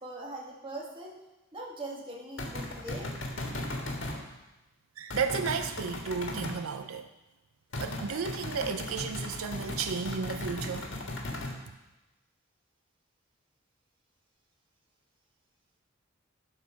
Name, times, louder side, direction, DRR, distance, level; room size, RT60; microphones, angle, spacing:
voice 1, 0.0-1.1 1.5-3.2, right 1 dB, 25° right, -2 dB, 1.6 m, -41 dB
sound 1, 2.4-4.2 5.1-6.6 7.7-11.6, left 1 dB, 60° left, 1.6 m, -37 dB
voice 2, 5.0-7.1 7.8-10.9, right 5 dB, 85° right, 8 dB, 0.5 m, -33 dB
12.0 x 4.6 x 5.6 m, 1.0 s
head